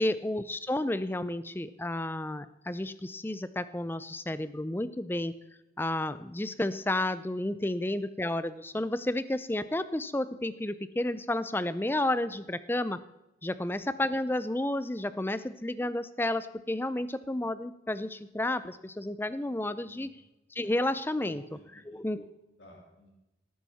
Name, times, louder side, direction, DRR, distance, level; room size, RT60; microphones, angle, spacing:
voice 1, 0.0-5.3 5.8-13.0 13.4-20.1 20.5-21.4 21.9-22.2, left 1 dB, 10° left, 14 dB, 0.5 m, -31 dB
voice 2, 21.2-22.1 22.6-23.1, equal, 90° left, -2 dB, 3.3 m, -52 dB
17.5 x 9.4 x 4.2 m, 0.95 s
head